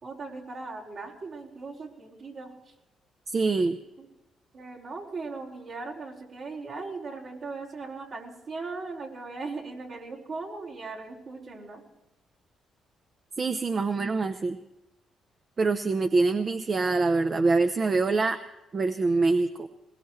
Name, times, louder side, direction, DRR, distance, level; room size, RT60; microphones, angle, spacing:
voice 1, 0.0-2.7 4.0-4.1 4.5-11.8, right 3 dB, 60° right, -4 dB, 4.5 m, -38 dB
voice 2, 3.3-3.8 13.4-14.6 15.6-18.4 18.7-19.7, right 3 dB, 40° right, 9 dB, 0.7 m, -25 dB
21.5 x 20.5 x 3.2 m, 0.96 s
cardioid pair, 90°, 0 cm